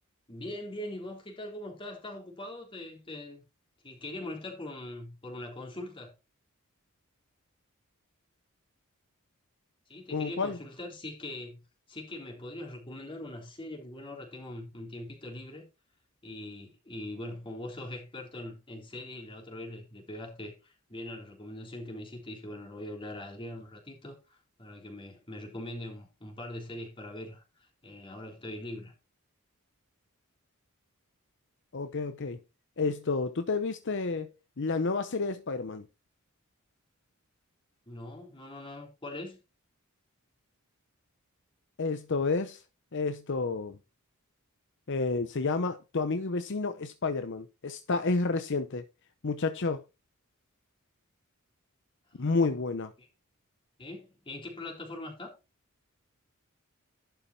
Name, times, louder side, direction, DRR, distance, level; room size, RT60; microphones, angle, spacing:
voice 1, 0.3-3.4 3.8-6.1 9.9-11.6 11.9-15.7 16.2-28.9 37.9-39.4 52.1-52.2 52.5-52.6 53.0-53.1 53.8-55.3, left 1 dB, 25° left, 3.5 m, -42 dB
voice 2, 10.1-10.6 31.7-32.4 32.8-34.3 34.6-35.8 41.8-42.6 42.9-43.8 44.9-48.9 49.2-49.8 52.2-52.9, left 3 dB, 55° left, 0.7 m, -30 dB
11.5 x 5.6 x 4.3 m
head